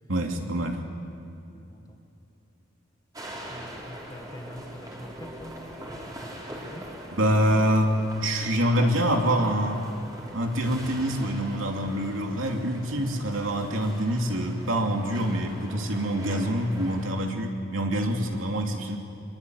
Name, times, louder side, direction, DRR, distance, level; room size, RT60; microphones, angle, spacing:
voice 1, 0.1-0.8 7.1-9.8 10.3-19.0, equal, 80° right, 2 dB, 3.0 m, -26 dB
voice 2, 1.5-2.0 3.5-6.9, equal, 20° left, 4 dB, 1.9 m, -45 dB
sound 1, 3.1-17.1, equal, 20° right, 4.3 m, -42 dB
24.5 x 22.0 x 9.6 m, 2.9 s
head